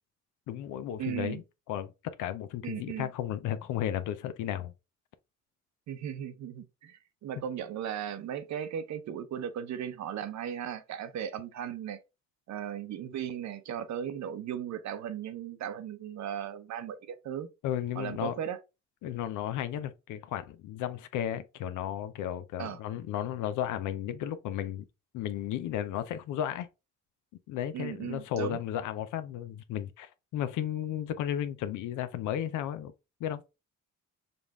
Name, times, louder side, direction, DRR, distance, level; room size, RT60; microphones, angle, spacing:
voice 1, 0.5-1.4 1.7-4.7 17.6-18.3 19.0-24.8 25.1-26.7 27.5-32.9 33.2-33.4, left 10 dB, 85° left, 0.5 m, -34 dB
voice 2, 1.0-1.4 2.6-3.1 5.9-12.0 12.5-17.5 17.9-18.6 22.6-22.8 27.7-28.6, right 9 dB, 65° right, 0.7 m, -37 dB
5.2 x 2.5 x 3.4 m
cardioid pair, 90°, 30 cm